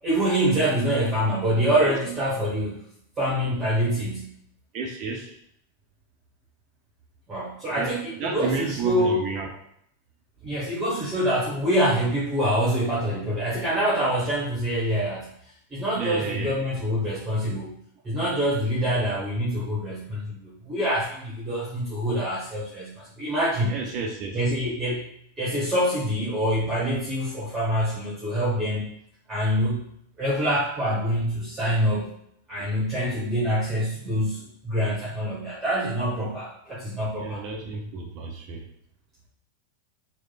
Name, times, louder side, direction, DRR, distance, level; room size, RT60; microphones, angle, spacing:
voice 1, 0.0-2.8 3.2-4.3 7.3-9.3 10.4-15.3 15.7-17.8 18.0-23.8 24.3-25.0 25.4-28.9 29.3-29.8 30.2-32.1 32.5-37.4, equal, 15° right, -8 dB, 1.1 m, -25 dB
voice 2, 4.7-5.3 7.8-7.9 8.2-9.5 16.0-16.5 23.7-24.4 37.2-38.6, right 4 dB, 40° right, 1 dB, 0.5 m, -31 dB
3.1 x 2.1 x 3.9 m, 0.70 s
figure-of-eight pair, 90°, 0 cm